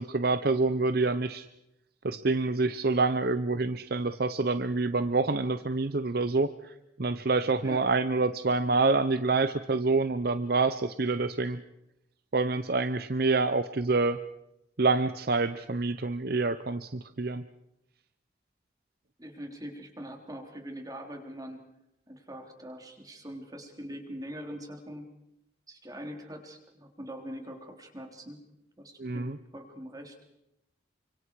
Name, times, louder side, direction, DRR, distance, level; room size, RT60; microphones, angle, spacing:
voice 1, 0.0-1.5 2.0-6.7 7.0-11.6 12.3-14.2 14.8-17.4 29.0-29.4, right 3 dB, 55° right, 11 dB, 0.8 m, -27 dB
voice 2, 19.2-21.6 22.1-25.1 25.7-28.4 28.8-30.2, equal, 20° right, 3 dB, 3.7 m, -42 dB
29.5 x 25.5 x 4.8 m, 0.84 s
head